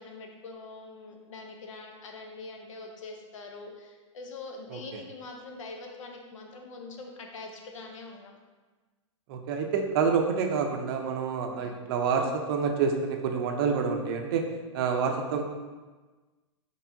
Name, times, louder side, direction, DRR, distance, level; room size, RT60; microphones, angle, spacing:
voice 1, 0.0-8.4 11.5-11.8, left 3 dB, 75° left, 2 dB, 0.8 m, -44 dB
voice 2, 9.3-14.4 14.7-15.4, right 6 dB, 45° right, 3 dB, 0.5 m, -27 dB
4.4 x 3.3 x 2.7 m, 1.3 s
hypercardioid pair, 135°, 17 cm